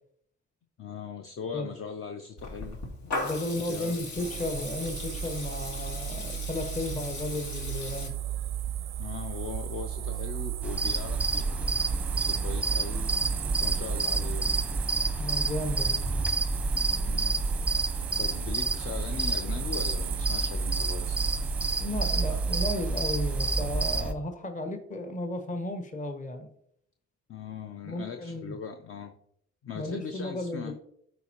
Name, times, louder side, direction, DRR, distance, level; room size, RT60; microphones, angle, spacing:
voice 1, 0.8-3.1 3.6-4.1 9.0-11.4 12.2-13.2 13.6-14.5 17.1-17.4 18.2-21.3 27.3-29.1 29.6-30.8, left 6 dB, 45° left, 7 dB, 0.6 m, -40 dB
Water tap faucet / Liquid, 2.4-8.1, left 2 dB, 70° left, 1.7 m, -38 dB
voice 2, 3.2-8.1 15.2-16.1 21.8-26.5 27.8-28.5 29.7-30.8, left 1 dB, 25° left, 6 dB, 1.0 m, -34 dB
sound 1, 4.2-24.0, right 10 dB, 45° right, 0.4 m, -36 dB
sound 2, 10.6-24.1, right 3 dB, 5° right, 0.7 m, -29 dB
11.5 x 4.3 x 2.9 m, 0.70 s
cardioid pair, 90°, 30 cm